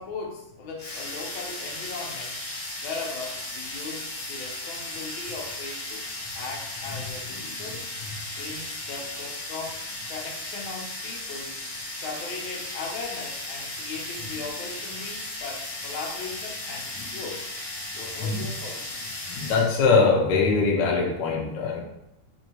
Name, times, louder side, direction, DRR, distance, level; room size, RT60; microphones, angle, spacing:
voice 1, 0.0-2.4 2.8-6.1 6.3-7.9 8.4-9.8 10.1-11.7 11.9-17.4 17.9-19.0, left 4 dB, 85° left, -1 dB, 1.6 m, -38 dB
sound 1, 0.8-19.7, left 2 dB, 55° left, 1.4 m, -36 dB
voice 2, 19.3-21.8, left 4 dB, 70° left, -1 dB, 1.3 m, -22 dB
4.2 x 2.7 x 2.8 m, 0.88 s
omnidirectional pair, 2.1 m